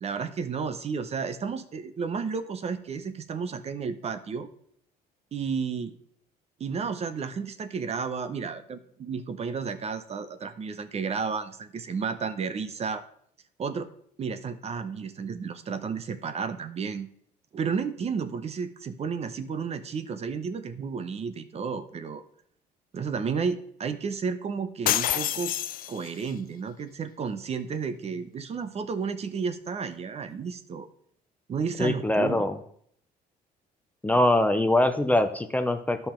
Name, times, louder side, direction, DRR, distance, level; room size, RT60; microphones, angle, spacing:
voice 1, 0.0-4.5 5.3-5.9 6.6-13.0 13.6-13.9 14.2-17.1 17.5-22.2 22.9-25.5 25.9-30.9 31.5-32.5, right 5 dB, 40° right, 11 dB, 0.8 m, -32 dB
sound 1, 24.9-26.3, left 12 dB, 55° left, 0.5 m, -27 dB
voice 2, 31.8-32.6 34.0-36.1, left 1 dB, 10° left, 8 dB, 0.6 m, -23 dB
12.5 x 5.5 x 4.4 m, 0.65 s
cardioid pair, 110°, 17 cm